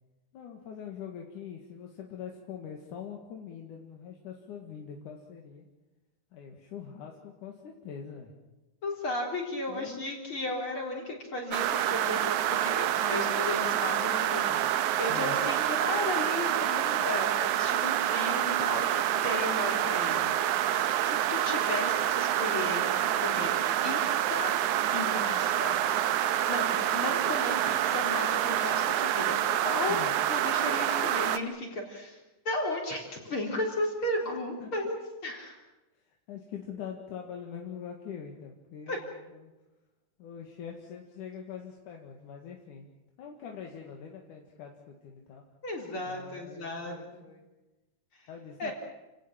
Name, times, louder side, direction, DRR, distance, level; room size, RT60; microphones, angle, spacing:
voice 1, 0.3-5.7 6.3-8.3 9.7-10.0 15.1-15.4 29.9-30.1 34.6-34.7 36.1-39.5 40.2-42.8 43.2-45.4 46.1-47.5 48.3-48.7, left 7 dB, 75° left, 1 dB, 3.4 m, -43 dB
voice 2, 8.8-20.3 20.9-23.5 23.8-24.5 24.9-25.8 26.5-29.4 29.6-30.0 30.3-32.2 32.4-35.0 35.2-35.6 38.9-39.0 45.6-47.3 48.1-48.3 48.6-48.7, left 2 dB, 40° left, 0 dB, 4.6 m, -35 dB
sound 1, 11.5-31.4, right 11 dB, 75° right, 2.4 m, -27 dB
29.0 x 18.0 x 7.5 m, 1.1 s
omnidirectional pair, 3.6 m